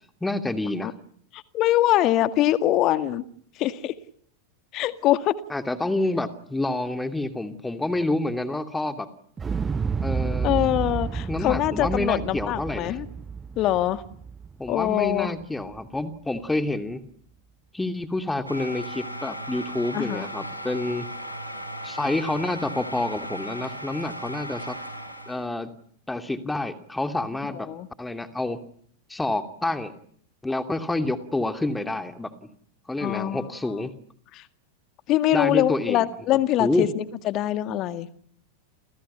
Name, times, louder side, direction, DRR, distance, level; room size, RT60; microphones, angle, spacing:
voice 1, 0.2-0.9 5.5-9.1 10.0-10.7 11.3-13.0 14.6-17.0 17.7-21.1 21.8-24.8 25.3-25.7 26.1-27.7 28.0-28.6 29.1-29.9 30.4-32.3 32.9-33.9 35.3-36.1 36.6-36.9, left 2 dB, 5° left, 2.7 m, -28 dB
voice 2, 1.3-3.2 3.6-3.9 4.7-5.3 10.4-13.1 13.6-14.0 14.7-15.3 19.9-20.3 27.5-27.9 33.0-33.5 34.3-34.4 35.1-38.1, left 13 dB, 35° left, 1.9 m, -23 dB
Explosion, 9.4-15.4 15.7-15.8, right 5 dB, 15° right, 1.1 m, -30 dB
sound 1, 18.5-25.5, equal, 90° left, 6.3 m, -36 dB
29.5 x 29.0 x 5.7 m
figure-of-eight pair, 90°, 0 cm